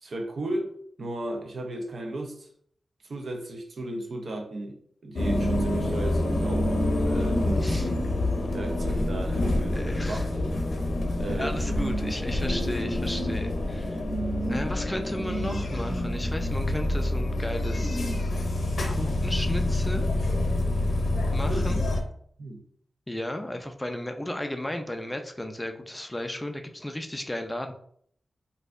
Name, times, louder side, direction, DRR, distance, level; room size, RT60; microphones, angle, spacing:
voice 1, 0.0-2.5 3.0-4.8 5.0-7.8 8.5-10.5 11.2-11.6 21.5-21.7 22.4-22.6, right 1 dB, 60° right, 2 dB, 0.5 m, -35 dB
sound 1, 5.2-22.0, left 1 dB, 80° left, 0.6 m, -27 dB
voice 2, 7.6-7.9 9.7-10.2 11.3-14.0 14.5-18.0 18.9-20.1 21.3-21.8 23.1-27.7, left 1 dB, 10° left, 5 dB, 0.4 m, -34 dB
4.2 x 2.7 x 2.4 m, 0.63 s
wide cardioid pair, 145°, 0 cm